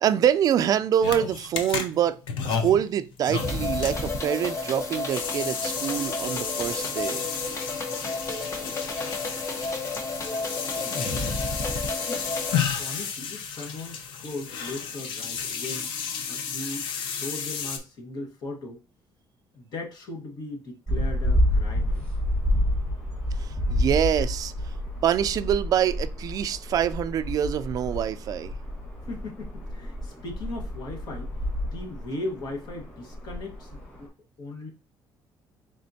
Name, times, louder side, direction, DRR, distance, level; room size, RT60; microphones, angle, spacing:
voice 1, 0.0-2.2 2.4-7.3 23.4-24.5 25.0-28.5, right 9 dB, 45° right, 0.3 m, -25 dB
sound 1, 1.0-17.8, left 7 dB, 85° left, 0.7 m, -33 dB
sound 2, 3.3-12.6, left 3 dB, 35° left, 0.8 m, -31 dB
voice 2, 10.9-11.4 12.1-12.3 12.8-15.9 16.3-18.8 19.5-22.0 29.1-31.3 31.6-34.1 34.4-34.7, left 2 dB, 55° left, 1.4 m, -38 dB
sound 3, 20.9-34.1, left 1 dB, 10° left, 1.7 m, -29 dB
4.2 x 3.6 x 2.7 m
cardioid pair, 145°, 9 cm